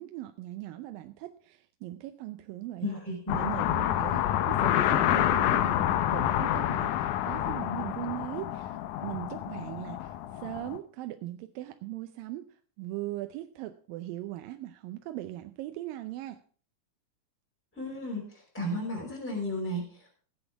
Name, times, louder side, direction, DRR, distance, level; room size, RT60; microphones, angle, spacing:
voice 1, 0.0-2.9 3.3-16.4, right 15 dB, 85° right, 8 dB, 2.4 m, -39 dB
voice 2, 2.8-3.4 17.7-20.1, left 1 dB, 5° left, -2 dB, 4.5 m, -34 dB
sound 1, 3.3-10.8, left 12 dB, 75° left, 2.1 m, -28 dB
17.5 x 7.9 x 4.6 m, 0.43 s
omnidirectional pair, 3.9 m